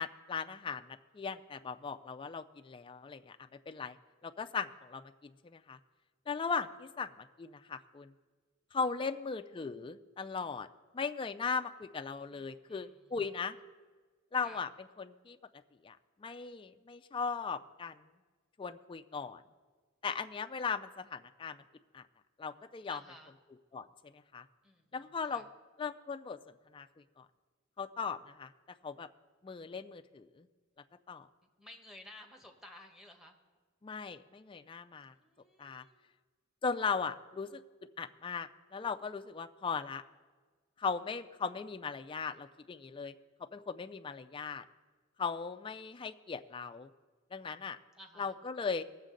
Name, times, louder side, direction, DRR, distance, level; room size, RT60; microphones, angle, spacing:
voice 1, 0.0-3.4 3.7-4.0 4.2-5.8 6.3-7.1 7.4-8.1 8.7-10.7 10.9-13.6 14.3-14.7 15.0-15.4 15.8-18.0 18.6-19.4 20.0-21.6 21.9-22.0 22.4-23.0 23.7-23.9 24.1-24.4 24.9-25.4 25.8-26.4 26.7-26.9 27.2-27.3 27.8-28.5 28.8-29.1 29.4-30.5 31.1-31.3 33.8-35.1 35.6-35.8 36.6-37.6 38.0-40.0 40.8-43.1 43.5-44.6 45.2-46.9 47.3-47.8 48.2-48.8, left 5 dB, 25° left, 8 dB, 0.3 m, -38 dB
voice 2, 8.8-9.1 12.3-13.2 14.4-14.6 22.9-23.3 24.6-25.4 31.4-33.4 35.0-36.0 47.9-48.3, left 1 dB, ahead, 2 dB, 1.1 m, -55 dB
19.5 x 7.2 x 3.8 m, 1.4 s
head